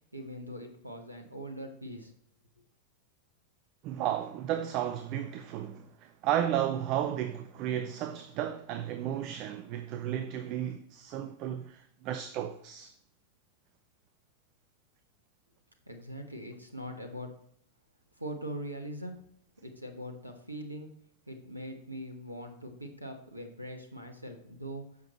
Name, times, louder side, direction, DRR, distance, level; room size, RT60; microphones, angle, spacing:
voice 1, 0.1-2.1 15.9-17.3 18.2-19.2 19.6-21.0 21.3-24.8, equal, 85° right, 1.3 m, -41 dB
voice 2, 3.8-12.9, right 11 dB, 40° right, 0.6 m, -33 dB
10.0 x 7.1 x 3.0 m
figure-of-eight pair, 90°, 0 cm